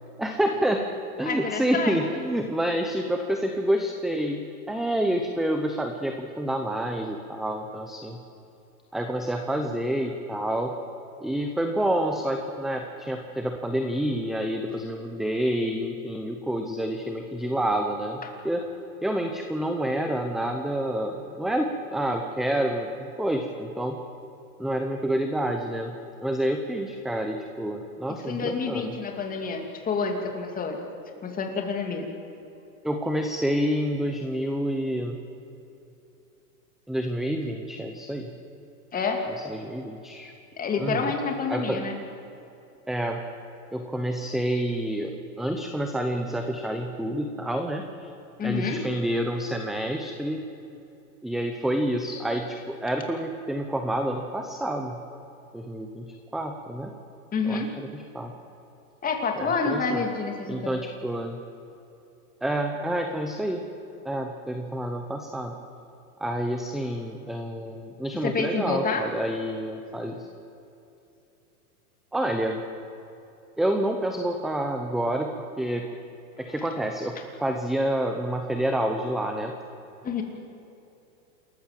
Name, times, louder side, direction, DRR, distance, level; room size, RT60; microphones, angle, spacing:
voice 1, 0.2-0.9 1.2-8.2 8.9-10.7 11.2-18.6 19.0-24.0 24.6-28.9 32.8-35.2 36.9-38.3 39.4-40.3 40.8-41.1 41.5-41.8 42.9-43.2 43.7-48.1 48.4-50.4 51.2-55.0 55.5-56.9 57.4-58.3 59.4-60.0 60.5-61.4 62.4-63.7 64.0-65.5 66.2-70.3 72.1-72.6 73.6-75.9 76.4-79.5, right 1 dB, ahead, 4 dB, 0.6 m, -28 dB
voice 2, 1.2-2.0 18.2-18.3 28.2-30.8 31.2-32.1 38.9-39.2 40.6-42.0 48.4-48.8 57.3-57.7 59.0-60.7 68.2-69.1 80.0-80.2, left 4 dB, 20° left, 3 dB, 2.6 m, -28 dB
27.5 x 14.0 x 7.5 m, 2.8 s
supercardioid pair, 145°, 47 cm